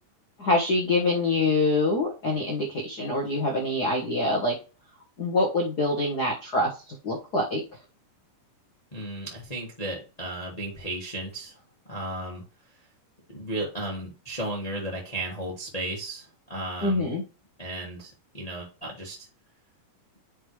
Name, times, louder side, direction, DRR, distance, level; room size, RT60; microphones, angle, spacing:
voice 1, 0.4-4.5 5.2-7.6 16.8-17.2, left 2 dB, 50° left, 0 dB, 1.2 m, -25 dB
voice 2, 8.9-11.6 11.9-12.4 13.3-17.1 17.6-19.2, right 1 dB, 15° left, -3 dB, 1.3 m, -34 dB
9.8 x 3.8 x 3.3 m, 0.32 s
omnidirectional pair, 3.8 m